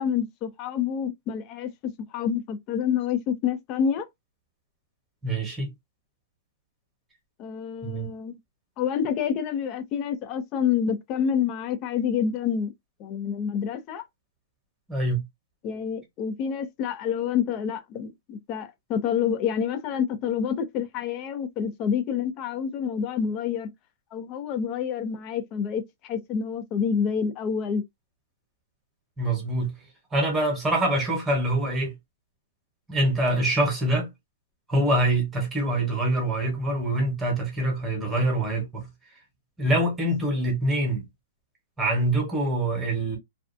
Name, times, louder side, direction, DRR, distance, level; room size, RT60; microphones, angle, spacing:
voice 1, 0.0-4.1 7.4-8.4 8.8-12.7 13.0-14.0 15.6-23.7 24.1-27.8, left 7 dB, 25° left, 0.4 m, -28 dB
voice 2, 5.2-5.7 7.8-8.1 14.9-15.2 29.2-29.7 30.1-31.9 32.9-34.1 34.7-38.9 39.6-41.0 41.8-43.2, right 1 dB, 10° right, 0.9 m, -25 dB
2.4 x 2.3 x 2.5 m
hypercardioid pair, 165°, 0 cm